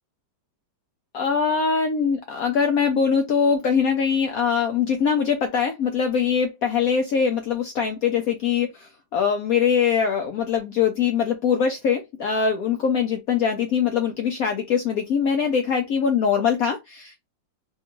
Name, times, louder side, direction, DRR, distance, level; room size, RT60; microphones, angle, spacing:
voice 1, 1.1-17.2, left 6 dB, 80° left, 0.8 m, -22 dB
3.3 x 2.3 x 3.0 m
omnidirectional pair, 2.1 m